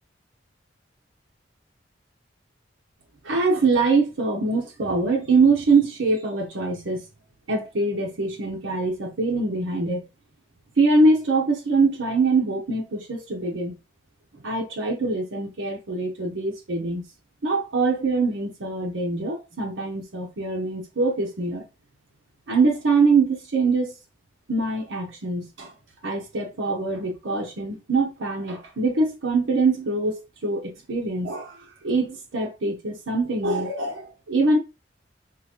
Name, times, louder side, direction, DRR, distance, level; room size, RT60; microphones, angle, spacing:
voice 1, 3.2-7.0 7.5-10.1 10.8-13.7 14.4-17.1 17.4-21.6 22.5-23.9 24.5-25.7 26.0-31.6 31.8-34.6, right 3 dB, 90° right, 0.8 m, -23 dB
3.8 x 2.5 x 2.9 m
head